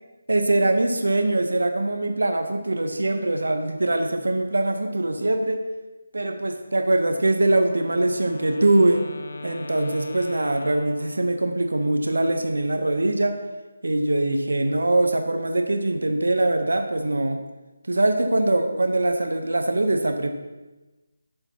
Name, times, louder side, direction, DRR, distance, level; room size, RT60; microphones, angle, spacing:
voice 1, 0.3-5.6 6.1-9.0 9.4-13.4 13.8-17.4 17.9-20.3, right 2 dB, 75° right, 5 dB, 0.9 m, -22 dB
Wind instrument woodwind instrument, 7.6-11.7, left 2 dB, 65° left, 0.7 m, -40 dB
11.0 x 6.9 x 3.0 m, 1.1 s
figure-of-eight pair, 160°, 0 cm